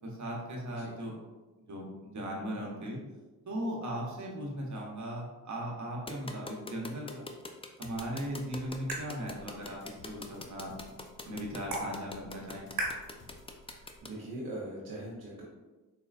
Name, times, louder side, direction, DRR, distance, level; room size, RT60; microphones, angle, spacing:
voice 1, 0.0-1.1 1.7-3.0 3.5-7.3 7.8-11.0 11.3-12.7, equal, 50° right, -2 dB, 1.0 m, -38 dB
sound 1, 6.1-14.1, left 3 dB, 15° left, 0.4 m, -43 dB
sound 2, 7.8-13.5, left 3 dB, 65° left, 0.9 m, -56 dB
sound 3, 8.0-14.0, right 2 dB, 70° right, 1.3 m, -42 dB
voice 2, 13.6-15.4, right 1 dB, 90° right, -6 dB, 0.8 m, -42 dB
4.1 x 2.3 x 2.4 m, 1.2 s
supercardioid pair, 45°, 36 cm